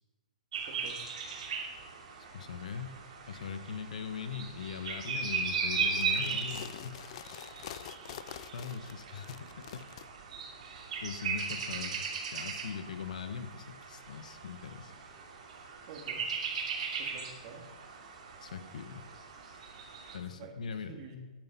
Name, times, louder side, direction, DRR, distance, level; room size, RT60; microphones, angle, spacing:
sound 1, 0.5-20.2, right 5 dB, 60° right, 2.8 m, -38 dB
voice 1, 0.7-1.0 15.9-16.2 17.0-17.6 20.1-21.2, right 4 dB, 40° right, 1 dB, 2.7 m, -48 dB
voice 2, 2.3-3.0 3.3-7.0 8.5-9.5 9.7-9.8 11.0-12.0 12.3-14.9 18.4-19.0 20.1-20.9, left 6 dB, 70° left, 10 dB, 1.3 m, -40 dB
sound 2, 5.8-10.1, left 11 dB, 50° left, 0.5 m, -46 dB
11.5 x 10.5 x 5.5 m, 1.3 s
hypercardioid pair, 145°, 4 cm